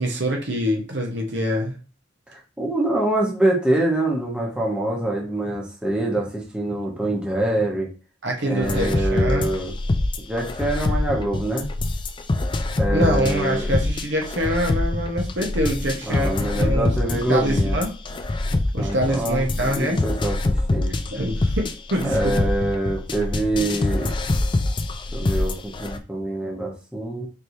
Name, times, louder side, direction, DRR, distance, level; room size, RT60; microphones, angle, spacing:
voice 1, 0.0-1.8 8.2-9.5 12.9-17.9 18.7-20.0 21.1-22.5, equal, 65° right, 1 dB, 1.0 m, -25 dB
voice 2, 2.3-7.9 8.4-9.7 10.3-11.7 12.8-13.7 16.1-17.8 18.8-20.9 22.0-24.1 25.1-27.3, right 1 dB, 5° right, -2 dB, 1.0 m, -25 dB
sound 1, 8.6-26.0, left 2 dB, 25° left, 0.3 m, -25 dB
4.4 x 3.2 x 2.7 m, 0.36 s
head